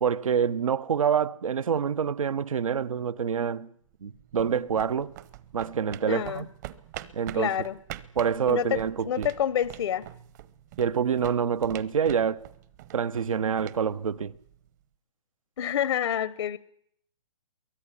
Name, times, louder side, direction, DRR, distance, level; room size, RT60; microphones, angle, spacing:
voice 1, 0.0-3.7 4.0-5.1 5.5-6.5 7.1-7.5 8.2-9.3 10.8-12.5 12.9-14.3, right 7 dB, 80° right, 1.1 m, -26 dB
sound 1, 3.9-14.7, right 13 dB, 35° right, 1.0 m, -45 dB
voice 2, 6.1-6.4 7.3-7.8 8.5-10.0 15.6-16.6, left 9 dB, 65° left, 0.9 m, -28 dB
23.0 x 17.0 x 9.9 m
hypercardioid pair, 160°, 17 cm